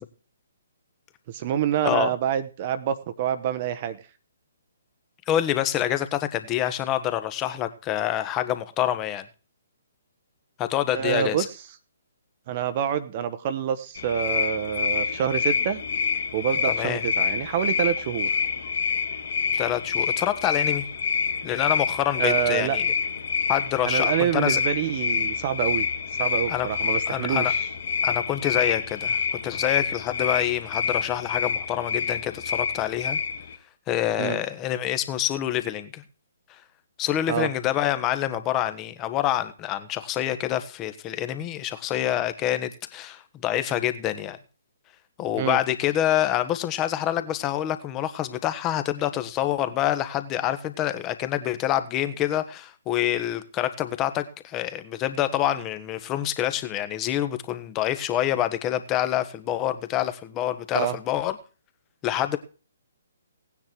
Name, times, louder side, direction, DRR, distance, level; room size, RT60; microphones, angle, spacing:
voice 1, 1.3-4.0 10.9-11.5 12.5-15.8 16.3-18.3 22.2-22.8 23.8-25.9 26.2-27.7 34.2-34.4 37.3-37.5 45.4-45.6 60.7-61.0, right 9 dB, 35° right, 11 dB, 1.1 m, -27 dB
voice 2, 5.3-9.2 10.6-11.4 16.7-17.0 19.5-20.9 21.4-22.8 23.5-24.6 26.5-26.7 27.1-27.5 28.0-33.2 33.9-36.0 37.0-44.4 45.2-61.3 62.0-62.4, left 12 dB, 20° left, 10 dB, 1.5 m, -26 dB
sound 1, 13.9-33.6, left 6 dB, 55° left, 2.2 m, -27 dB
18.0 x 9.6 x 4.7 m, 0.36 s
figure-of-eight pair, 130°, 0 cm